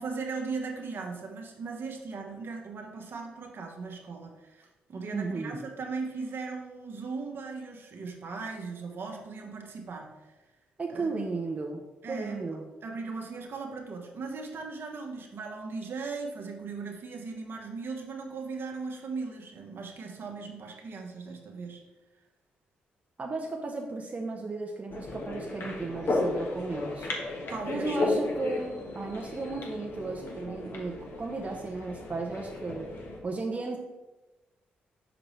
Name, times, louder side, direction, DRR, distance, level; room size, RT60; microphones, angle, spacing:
voice 1, 0.0-10.3 10.9-11.3 12.0-12.4 12.8-21.8 27.5-28.2, right 4 dB, 55° right, 1 dB, 1.1 m, -38 dB
voice 2, 5.1-5.6 10.8-12.6 23.2-27.1 27.7-32.9 33.2-33.8, right 3 dB, 30° right, 0 dB, 0.8 m, -35 dB
sound 1, 24.9-33.2, left 2 dB, 55° left, 1.2 m, -34 dB
6.1 x 5.0 x 3.2 m, 1.1 s
hypercardioid pair, 40°, 5 cm